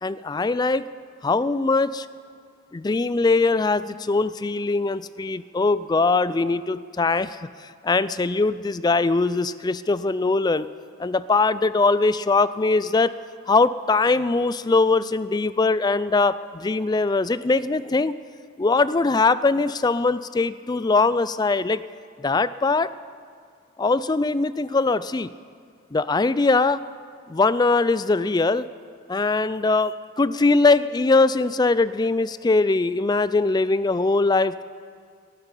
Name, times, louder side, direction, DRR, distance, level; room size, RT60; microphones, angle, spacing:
voice 1, 0.0-0.8 1.2-2.1 2.7-7.5 7.8-10.7 11.0-13.1 13.5-18.2 18.6-21.8 22.2-22.9 23.8-25.3 25.9-26.8 27.3-28.7 29.1-34.6, left 3 dB, 20° left, 16 dB, 0.3 m, -21 dB
12.0 x 12.0 x 9.8 m, 2.2 s
head